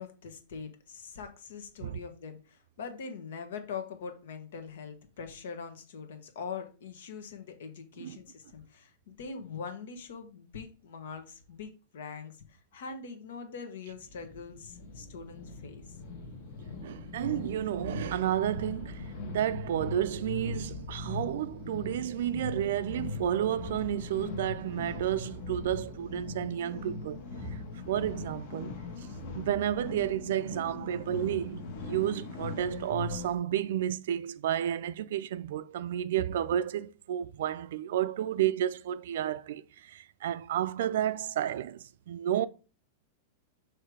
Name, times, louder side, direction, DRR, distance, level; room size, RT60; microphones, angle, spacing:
voice 1, 0.0-16.0, left 5 dB, 75° left, 1.3 m, -43 dB
sound 1, 13.9-33.3, left 3 dB, 45° left, 1.2 m, -40 dB
voice 2, 16.8-27.2 27.9-28.7 29.3-31.6 31.8-42.5, right 11 dB, 65° right, 0.4 m, -31 dB
6.6 x 3.2 x 4.8 m
supercardioid pair, 175°, 0 cm